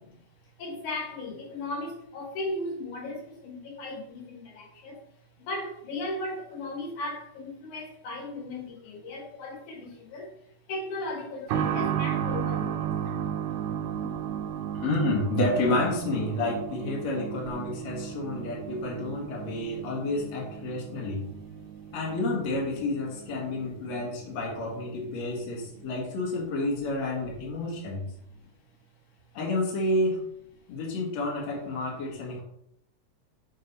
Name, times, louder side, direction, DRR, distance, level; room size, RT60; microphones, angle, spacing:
voice 1, 0.6-5.0 5.5-10.3 10.7-13.0, left 2 dB, 85° left, 0 dB, 3.1 m, -36 dB
sound 1, 11.5-25.9 26.2-26.3 27.2-27.4, right 9 dB, 75° right, 2.0 m, -34 dB
voice 2, 14.8-21.3 21.9-28.1 29.3-30.2 30.7-32.4, left 2 dB, 65° left, -2 dB, 2.7 m, -30 dB
8.5 x 4.7 x 4.1 m, 0.72 s
omnidirectional pair, 3.4 m